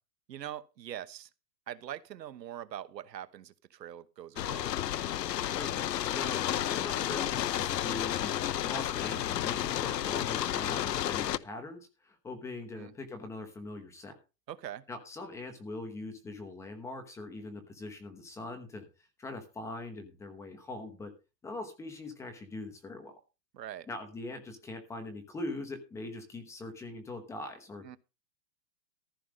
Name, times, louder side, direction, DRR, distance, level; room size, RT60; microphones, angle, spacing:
voice 1, 0.3-1.3 1.7-4.7 12.7-12.9 14.5-14.8 23.5-23.9 27.8-28.0, right 11 dB, 80° right, 1.1 m, -43 dB
sound 1, 4.4-11.4, left 12 dB, 75° left, 0.9 m, -31 dB
voice 2, 5.5-14.2 14.9-18.9 19.2-21.1 21.4-23.2 23.9-27.8, left 2 dB, 5° left, 1.0 m, -42 dB
14.5 x 5.6 x 6.3 m
hypercardioid pair, 165°, 49 cm